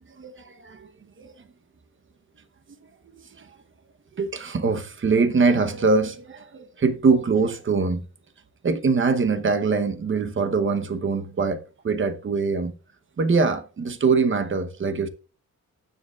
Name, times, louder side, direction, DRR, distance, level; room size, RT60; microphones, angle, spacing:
voice 1, 0.2-0.9 1.2-1.3 3.1-3.5 4.2-8.0 8.6-12.7 13.2-15.1, right 4 dB, 40° right, 0.9 m, -23 dB
18.5 x 7.4 x 2.4 m
wide cardioid pair, 125°, 32 cm